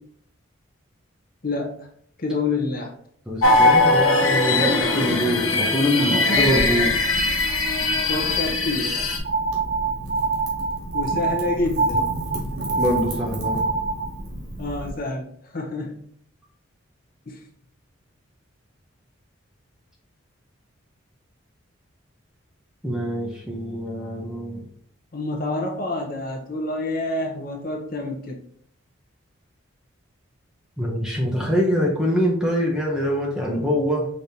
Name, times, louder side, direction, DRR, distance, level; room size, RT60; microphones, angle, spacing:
voice 1, 1.4-1.9 2.2-2.9 5.9-7.1 7.6-9.0 10.9-12.1 14.6-16.0 17.3-17.4 25.1-28.4, left 2 dB, 45° left, 1 dB, 0.6 m, -28 dB
voice 2, 3.3-6.9 12.8-13.6 22.8-24.6 30.8-34.1, equal, 5° right, -2 dB, 0.8 m, -24 dB
sound 1, 3.4-9.2, left 2 dB, 85° left, 0.9 m, -20 dB
Wind / Fire, 6.3-14.9, right 1 dB, 90° right, 1.7 m, -34 dB
sound 2, 9.2-14.1, right 4 dB, 50° right, 1.0 m, -25 dB
5.2 x 3.1 x 2.8 m, 0.66 s
head